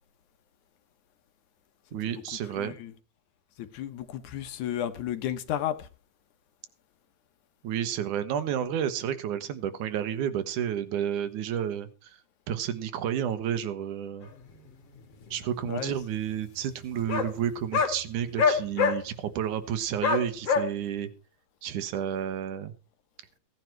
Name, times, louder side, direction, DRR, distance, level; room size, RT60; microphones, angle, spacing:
voice 1, 1.9-2.8 7.6-12.2 12.5-14.3 15.3-21.1 21.6-22.7, right 9 dB, 85° right, 2.7 m, -31 dB
voice 2, 2.6-2.9 3.6-5.9 15.7-15.9, left 11 dB, 75° left, 2.6 m, -33 dB
sound 1, 14.2-14.3 15.2-15.3 15.6-15.7 15.9-16.0 17.1-17.3 17.7-18.0 18.4-19.0 20.0-20.6, left 5 dB, 55° left, 2.7 m, -23 dB
16.5 x 9.9 x 4.6 m
omnidirectional pair, 3.4 m